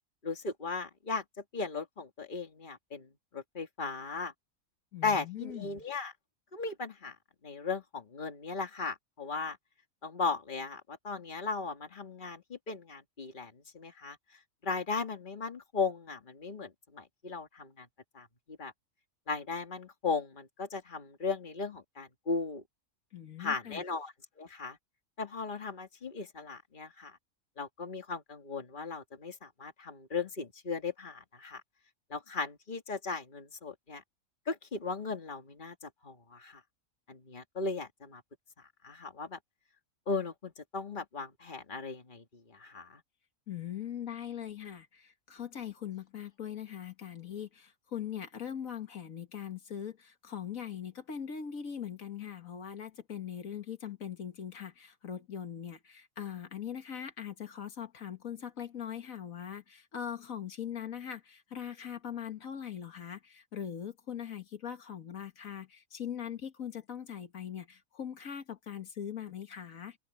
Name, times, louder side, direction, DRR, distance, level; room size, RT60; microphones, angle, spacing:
voice 1, 0.2-1.2 1.5-3.1 3.3-4.3 5.0-6.1 6.5-7.2 7.4-9.6 10.0-14.2 14.6-17.9 18.1-18.7 19.3-22.6 23.4-24.8 25.2-27.2 27.6-31.6 32.1-34.0 34.5-36.6 37.1-38.2 38.8-39.4 40.1-42.2 42.5-43.0, left 4 dB, 35° left, 2.1 m, -37 dB
voice 2, 4.9-5.8 23.1-23.8 43.5-70.0, left 9 dB, 85° left, 2.0 m, -41 dB
omnidirectional pair, 1.4 m